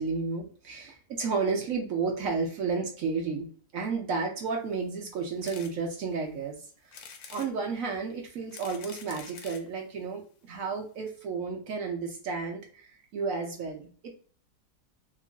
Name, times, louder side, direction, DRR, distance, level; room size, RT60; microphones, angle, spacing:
voice 1, 0.0-6.6 6.8-7.0 7.3-13.9, right 4 dB, 60° right, 1 dB, 1.0 m, -32 dB
sound 1, 5.4-5.7 6.2-6.3 6.9-7.5 8.3-9.7 10.5-10.6 10.8-10.9 11.1-11.2, left 6 dB, 70° left, 1.0 m, -46 dB
3.0 x 2.5 x 2.4 m, 0.44 s
omnidirectional pair, 1.8 m